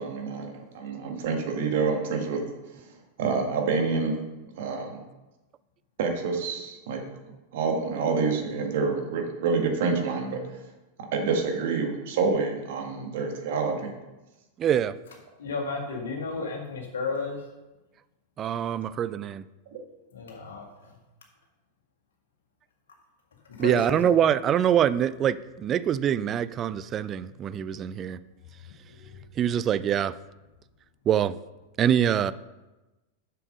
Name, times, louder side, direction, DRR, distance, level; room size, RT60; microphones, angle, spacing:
voice 1, 0.0-2.4 3.2-4.2 4.6-5.0 6.0-7.0 7.5-10.4 11.1-13.9, right 4 dB, 55° right, 3 dB, 1.7 m, -27 dB
voice 2, 14.6-15.0 18.4-19.4 23.6-28.2 29.4-30.1 31.1-31.3 31.8-32.3, right 9 dB, 30° right, 16 dB, 0.4 m, -24 dB
voice 3, 15.4-17.4 20.1-20.7 23.6-24.1 28.9-29.0, left 4 dB, 65° left, 1 dB, 1.9 m, -32 dB
7.1 x 6.8 x 5.2 m, 1.1 s
figure-of-eight pair, 90°, 0 cm